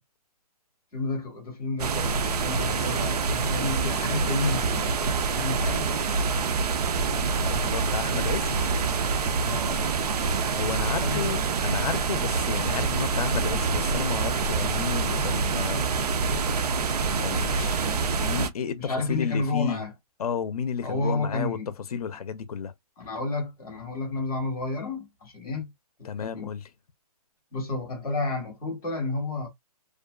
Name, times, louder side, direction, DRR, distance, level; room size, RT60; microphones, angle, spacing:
voice 1, 0.9-5.8 9.2-9.8 10.6-11.4 17.8-18.0 18.8-19.9 20.8-21.7 23.0-25.7 26.0-26.5 27.5-29.5, left 3 dB, ahead, 0.3 m, -31 dB
sound 1, 1.8-18.5, right 4 dB, 75° right, 0.5 m, -26 dB
voice 2, 7.1-8.6 10.5-15.8 17.2-17.8 18.2-18.8 19.1-19.8 20.2-21.6 21.9-22.7 26.0-26.6, left 7 dB, 70° left, 0.5 m, -32 dB
2.4 x 2.2 x 2.3 m
hypercardioid pair, 170°, 20 cm